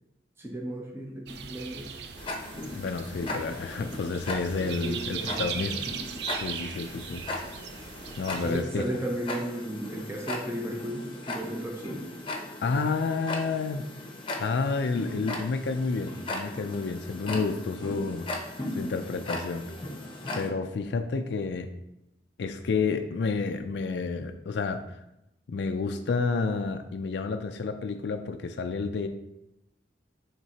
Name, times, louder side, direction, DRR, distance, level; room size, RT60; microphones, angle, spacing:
voice 1, 0.4-1.9 4.8-5.8 8.4-12.1, right 1 dB, 15° right, 0 dB, 0.7 m, -35 dB
sound 1, 1.3-8.6, right 7 dB, 65° right, 0.4 m, -39 dB
Tick-tock, 2.2-20.5, left 2 dB, 30° left, 0.8 m, -38 dB
voice 2, 2.7-5.8 6.4-7.2 8.2-8.8 12.6-13.9 14.4-18.3 18.7-19.7 20.3-21.7 22.4-25.0 25.5-29.1, left 4 dB, 65° left, 7 dB, 0.4 m, -30 dB
9.3 x 3.6 x 2.8 m, 0.90 s
head